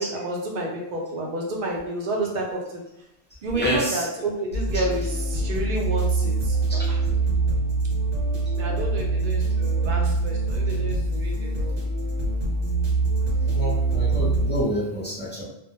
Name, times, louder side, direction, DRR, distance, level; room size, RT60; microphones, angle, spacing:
voice 1, 0.0-2.8 3.4-7.0 8.5-11.8, right 2 dB, 55° right, -1 dB, 0.6 m, -30 dB
voice 2, 3.5-4.0 13.4-15.4, equal, 15° left, -7 dB, 0.3 m, -28 dB
sound 1, 4.5-14.6, right 3 dB, 75° right, 1.0 m, -24 dB
2.1 x 2.1 x 2.8 m, 0.87 s
omnidirectional pair, 1.2 m